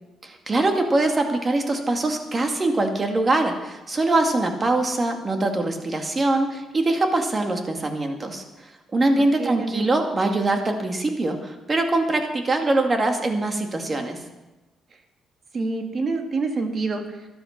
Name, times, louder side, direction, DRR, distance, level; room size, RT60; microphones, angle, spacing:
voice 1, 0.2-14.2, right 2 dB, 30° right, 4 dB, 2.2 m, -23 dB
voice 2, 9.2-9.9 15.5-17.0, right 3 dB, 45° right, 5 dB, 2.0 m, -27 dB
12.5 x 11.5 x 6.0 m, 1.1 s
cardioid pair, 90°, 0 cm